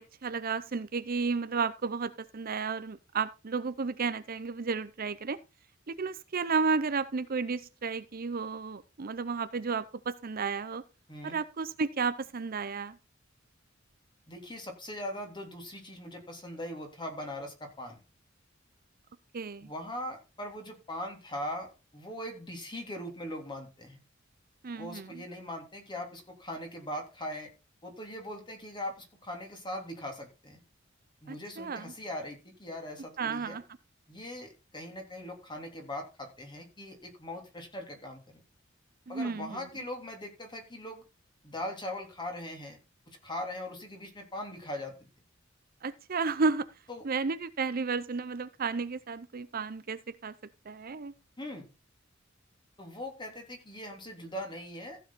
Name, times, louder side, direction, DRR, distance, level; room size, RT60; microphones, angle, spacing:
voice 1, 0.0-5.4 5.9-10.8 11.2-13.0 19.3-19.7 24.6-25.1 31.3-31.9 33.2-33.6 39.1-39.6 45.8-46.7 47.0-50.3 50.7-51.1, right 4 dB, 45° right, 14 dB, 0.6 m, -32 dB
voice 2, 14.3-18.0 19.6-24.0 24.7-27.5 27.8-30.6 31.2-33.6 34.1-38.4 39.1-41.0 41.4-42.8 43.1-45.1 46.9-47.1 51.4-51.7 52.8-55.0, left 1 dB, 25° left, 2 dB, 3.4 m, -40 dB
15.0 x 7.0 x 4.2 m, 0.29 s
head